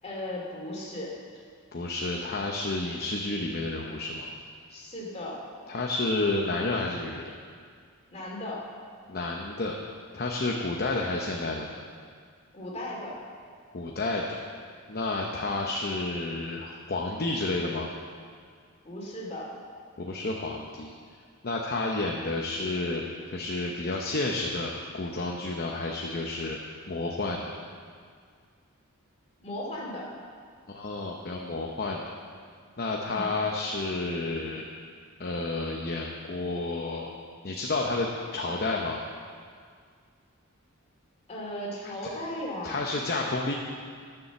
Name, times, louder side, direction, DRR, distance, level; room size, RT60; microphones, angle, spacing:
voice 1, 0.0-1.1 4.7-5.4 8.1-8.6 12.5-13.2 18.8-19.5 29.4-30.0 33.1-33.3 41.3-43.0, left 1 dB, 30° left, -4 dB, 2.6 m, -36 dB
voice 2, 1.7-4.3 5.7-7.3 9.1-9.7 10.1-11.8 13.7-14.4 14.9-17.9 20.0-20.9 21.4-26.6 26.9-27.5 30.7-32.1 32.8-34.6 35.2-37.1 37.4-39.0 41.8-42.1 42.6-43.5, left 2 dB, 45° left, 0 dB, 0.8 m, -30 dB
13.0 x 7.0 x 6.9 m, 2.1 s
head